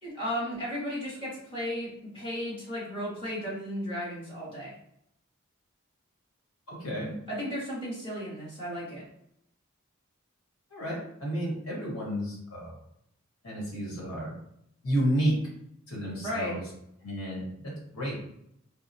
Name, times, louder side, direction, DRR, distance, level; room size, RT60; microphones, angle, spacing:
voice 1, 0.0-4.7 7.3-9.0 16.2-16.6, equal, 25° left, -9 dB, 1.4 m, -34 dB
voice 2, 6.7-7.2 10.7-12.7 13.4-14.3 14.8-15.4 15.9-16.6 17.0-18.2, right 1 dB, 75° left, -4 dB, 1.2 m, -31 dB
2.7 x 2.1 x 2.7 m, 0.75 s
head